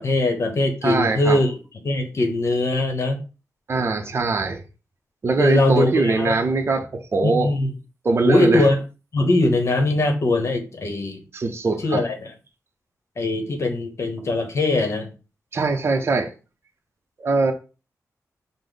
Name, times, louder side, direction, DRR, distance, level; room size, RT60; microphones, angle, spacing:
voice 1, 0.0-1.5 1.8-3.2 5.4-6.4 7.2-7.7 8.2-8.8 9.1-11.2 11.6-12.3 13.2-15.1, left 2 dB, 50° left, 0.8 m, -21 dB
voice 2, 0.8-1.4 3.7-4.6 5.2-7.5 8.0-8.6 11.3-12.0 15.5-16.3 17.2-17.5, right 3 dB, 40° right, 0.6 m, -22 dB
5.1 x 2.0 x 3.8 m
wide cardioid pair, 120°, 6 cm